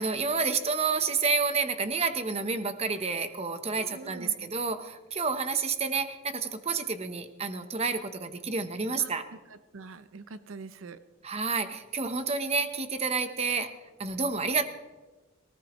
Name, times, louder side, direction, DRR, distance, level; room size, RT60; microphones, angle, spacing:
voice 1, 0.0-9.3 11.2-13.7 14.0-14.7, right 4 dB, 30° right, 9 dB, 1.0 m, -29 dB
voice 2, 3.7-4.5 9.0-9.1 9.5-11.0, right 4 dB, 85° right, 13 dB, 0.6 m, -44 dB
19.0 x 18.5 x 3.1 m, 1.2 s
head